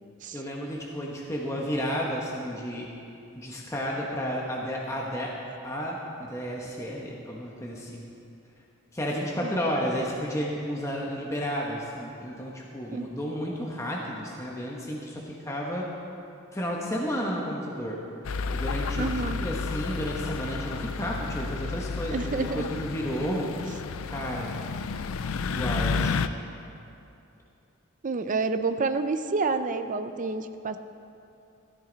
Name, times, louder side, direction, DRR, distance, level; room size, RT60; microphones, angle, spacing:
voice 1, 0.3-2.9 3.3-5.3 5.6-8.1 8.9-15.9 16.5-18.0 18.5-23.5 24.1-24.6 25.5-26.2, equal, 15° left, -3 dB, 1.1 m, -32 dB
sound 1, 18.2-26.3, left 5 dB, 90° left, 0.5 m, -31 dB
voice 2, 19.0-19.4 22.1-22.6 28.0-30.8, right 3 dB, 40° right, 9 dB, 0.5 m, -29 dB
13.5 x 13.5 x 4.0 m, 2.7 s
head